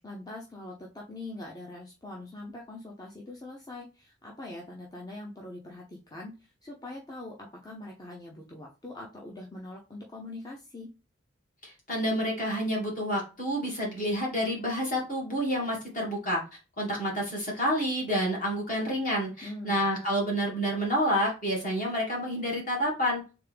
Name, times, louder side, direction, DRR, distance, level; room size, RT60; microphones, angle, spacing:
voice 1, 0.0-10.9 19.4-19.8, left 2 dB, 20° left, -2 dB, 0.6 m, -43 dB
voice 2, 11.6-16.4 16.8-23.2, equal, 40° left, -1 dB, 1.6 m, -29 dB
3.5 x 3.4 x 3.3 m, 0.31 s
head